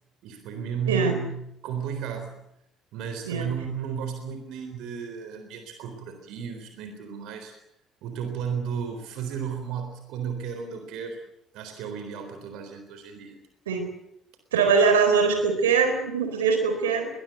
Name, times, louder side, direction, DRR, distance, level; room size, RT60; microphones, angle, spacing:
voice 1, 0.2-2.3 2.9-7.5 8.0-11.2 11.5-13.4, right 7 dB, 60° right, 7 dB, 3.8 m, -33 dB
voice 2, 14.5-17.1, right 5 dB, 75° right, 6 dB, 4.2 m, -22 dB
22.0 x 21.0 x 8.1 m, 0.79 s
figure-of-eight pair, 50°, 0 cm